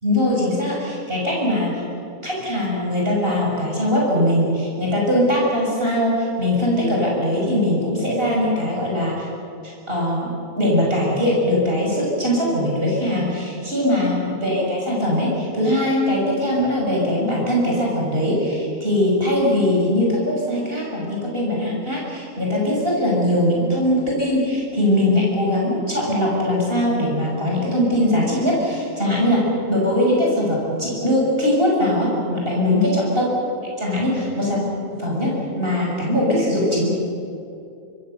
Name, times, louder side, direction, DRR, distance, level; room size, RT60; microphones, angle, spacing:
voice 1, 0.0-1.7 2.2-9.2 9.6-10.3 10.6-33.2 33.8-34.6 34.9-36.9, left 1 dB, 40° right, -3 dB, 6.4 m, -21 dB
26.0 x 24.0 x 6.7 m, 2.6 s
omnidirectional pair, 1.6 m